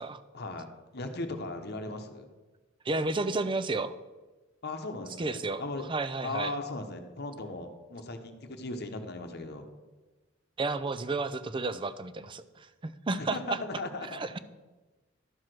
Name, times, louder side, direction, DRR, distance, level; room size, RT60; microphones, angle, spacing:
voice 1, 0.3-2.3 4.6-5.8 6.2-9.6 13.2-14.3, left 2 dB, 55° left, 6 dB, 1.0 m, -37 dB
voice 2, 2.8-3.9 5.2-5.6 5.9-6.5 10.6-13.6 14.1-14.4, right 3 dB, 25° right, 13 dB, 0.4 m, -32 dB
12.0 x 4.9 x 6.0 m, 1.2 s
head